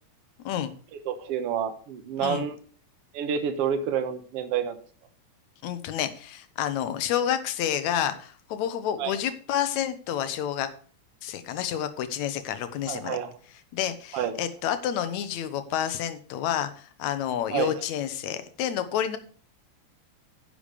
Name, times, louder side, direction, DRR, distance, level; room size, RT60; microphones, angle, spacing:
voice 1, 1.1-2.6 3.1-4.8 9.0-9.1 12.9-13.3 14.1-14.3 17.5-17.7, right 8 dB, 60° right, 8 dB, 1.9 m, -28 dB
voice 2, 5.6-10.7 11.2-13.2 13.7-19.2, left 10 dB, 80° left, 11 dB, 2.2 m, -29 dB
10.5 x 6.9 x 5.0 m, 0.42 s
omnidirectional pair, 3.3 m